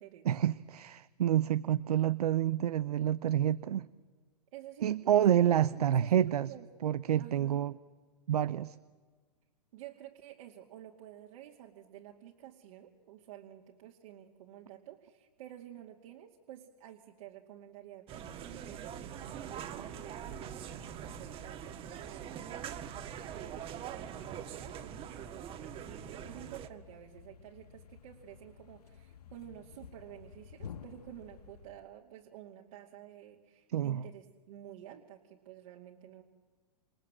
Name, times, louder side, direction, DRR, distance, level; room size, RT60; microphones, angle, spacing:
voice 1, 0.3-3.9 4.8-6.5 6.8-7.7 8.3-8.8 33.7-34.0, right 11 dB, 80° right, 16 dB, 0.7 m, -28 dB
voice 2, 4.5-6.7 7.2-7.7 9.7-36.2, right 12 dB, 60° right, 0 dB, 2.5 m, -51 dB
sound 1, 18.1-26.7, right 8 dB, 30° right, 1.6 m, -43 dB
Thump thud, 25.7-31.9, left 7 dB, 80° left, 1.3 m, -52 dB
27.5 x 26.5 x 7.7 m, 1.5 s
hypercardioid pair, 130°, 20 cm